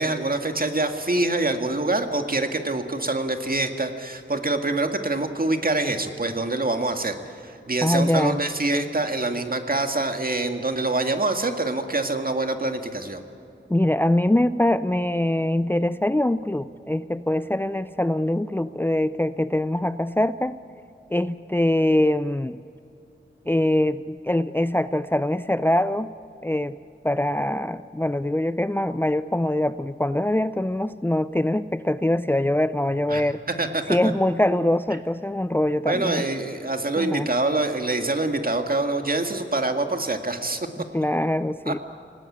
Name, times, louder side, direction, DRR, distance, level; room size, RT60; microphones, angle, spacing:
voice 1, 0.0-7.2 7.4-13.2 33.1-33.2 33.6-34.0 35.9-40.7 41.7-41.8, right 2 dB, 45° right, 6 dB, 2.0 m, -25 dB
voice 2, 7.8-8.4 13.7-20.6 21.1-22.6 23.5-26.1 26.4-26.8 27.0-33.4 33.9-36.3 37.0-37.3 40.9-41.8, left 1 dB, 10° left, 13 dB, 0.5 m, -23 dB
26.5 x 18.5 x 8.7 m, 2.7 s
wide cardioid pair, 70°, 20 cm